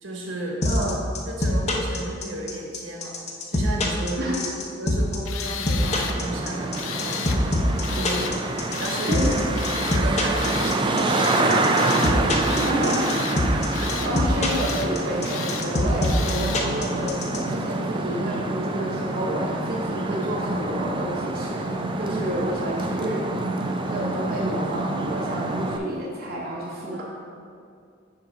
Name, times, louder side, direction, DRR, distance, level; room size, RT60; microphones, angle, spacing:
voice 1, 0.0-0.6 1.3-4.4 4.8-8.3 8.8-9.4 9.7-12.9 22.1-22.5 26.9-27.0, right 1 dB, 75° right, -2 dB, 1.3 m, -33 dB
sound 1, 0.6-17.4, left 2 dB, 35° left, 0.7 m, -24 dB
voice 2, 0.6-0.9 4.2-4.4 9.1-9.5 12.6-13.1 13.8-23.2 23.5-23.6 23.8-27.0, equal, 50° right, -5 dB, 0.9 m, -30 dB
Tools, 5.2-6.2 6.7-7.4 7.8-8.3 8.7-9.2 9.5-10.0 10.3-10.8 11.1-11.5 11.8-12.1 12.4-13.4 13.7-14.1 14.4-14.9 15.2-15.7 16.0-16.6, left 9 dB, 85° left, 0.4 m, -34 dB
Traffic noise roadway noise, 5.8-25.8, right 2 dB, 25° right, 0.4 m, -27 dB
7.0 x 3.9 x 5.6 m, 2.3 s
head